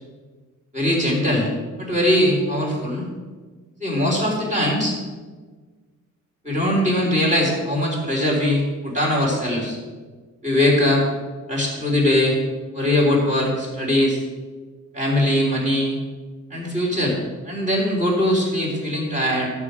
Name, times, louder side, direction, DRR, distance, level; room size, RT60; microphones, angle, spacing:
voice 1, 0.7-1.5 1.8-3.1 3.8-5.0 6.4-9.8 10.4-11.0 11.5-12.4 12.7-14.2 14.9-16.0 16.5-17.2 17.4-19.5, left 1 dB, 25° right, -3 dB, 3.4 m, -21 dB
14.0 x 7.4 x 5.0 m, 1.4 s
wide cardioid pair, 160°, 31 cm